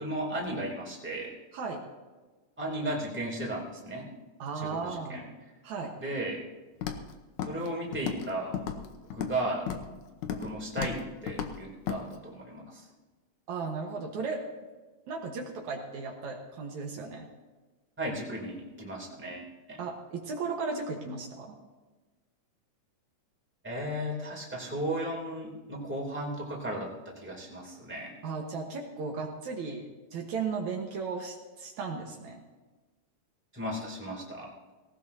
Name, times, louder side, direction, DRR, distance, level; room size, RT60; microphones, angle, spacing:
voice 1, 0.0-1.3 2.6-4.1 4.5-5.2 6.0-6.4 7.5-8.6 9.1-9.6 10.3-12.9 18.0-19.8 23.6-28.2 33.5-34.5, right 1 dB, 5° right, -3 dB, 2.7 m, -35 dB
voice 2, 4.4-5.2 5.6-5.9 13.5-14.4 15.1-17.3 19.8-21.6 28.2-32.4, right 4 dB, 70° right, 1 dB, 2.6 m, -35 dB
Walk footsteps, 6.8-7.1 7.4-7.7 7.9-8.3 8.5-9.4 9.7-9.9 10.2-10.5 10.8-11.0 11.3-11.5 11.9-12.0, left 8 dB, 75° left, 2.3 m, -34 dB
18.5 x 18.0 x 2.8 m, 1.2 s
omnidirectional pair, 3.7 m